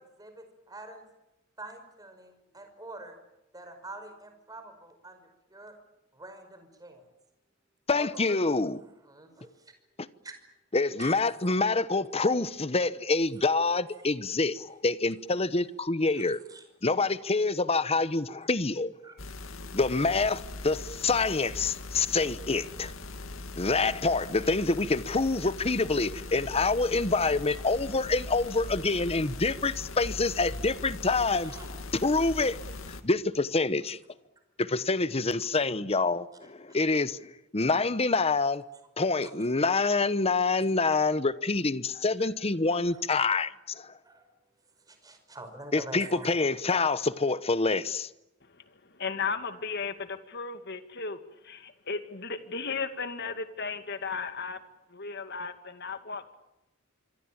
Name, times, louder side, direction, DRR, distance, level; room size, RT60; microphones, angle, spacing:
voice 1, 0.2-1.0 1.6-3.2 3.5-5.2 5.5-5.7 6.1-7.0 7.9-8.4 9.1-9.7 10.2-10.3 11.0-11.2 16.1-16.6 19.0-19.2 31.4-31.8 36.7-36.8 39.2-39.3 42.2-42.3 42.7-42.9 44.0-44.3 44.9-46.3, right 2 dB, 20° right, 5.5 m, -45 dB
voice 2, 7.9-8.8 10.0-10.1 10.7-16.4 16.8-18.9 19.7-22.9 23.6-31.7 31.9-32.6 32.9-34.0 34.6-38.6 39.0-43.9 45.7-48.1, left 3 dB, 30° left, 1.0 m, -26 dB
sound 1, 19.2-33.0, left 2 dB, 85° left, 2.3 m, -40 dB
voice 3, 48.4-54.6 54.9-56.3, left 5 dB, 55° left, 2.4 m, -35 dB
26.5 x 24.0 x 8.8 m
head